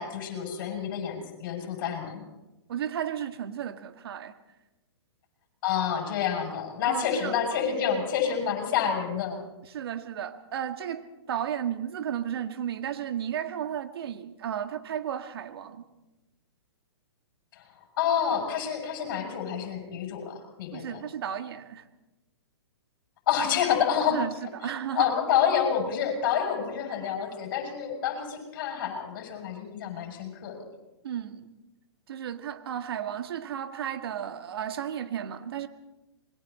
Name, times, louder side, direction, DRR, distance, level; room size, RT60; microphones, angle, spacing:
voice 1, 0.0-2.2 5.6-9.4 17.6-17.7 18.0-21.0 23.3-24.2 24.6-24.7 25.0-30.6, left 8 dB, 50° left, 7.4 m, -28 dB
voice 2, 2.7-4.3 6.9-7.4 9.7-11.0 11.3-15.9 20.7-21.8 24.1-25.2 31.0-31.5 32.1-35.7, right 9 dB, 60° right, 1.8 m, -33 dB
27.5 x 22.5 x 4.3 m
hypercardioid pair, 130°, 14 cm